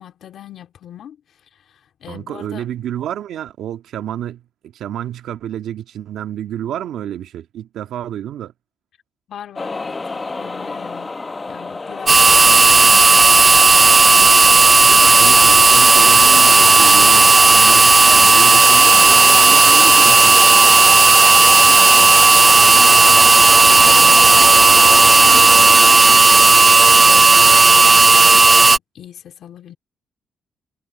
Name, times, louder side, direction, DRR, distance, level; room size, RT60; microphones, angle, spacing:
voice 1, 0.0-2.7 9.3-11.2 11.5-13.5 21.3-29.8, left 10 dB, 65° left, 3.0 m, -40 dB
voice 2, 2.1-8.5 14.7-20.6, right 11 dB, 75° right, 1.7 m, -29 dB
sound 1, 9.6-28.1, left 3 dB, 25° left, 1.0 m, -28 dB
sound 2, 12.1-28.8, right 3 dB, 25° right, 0.3 m, -10 dB
cardioid pair, 90°, 0 cm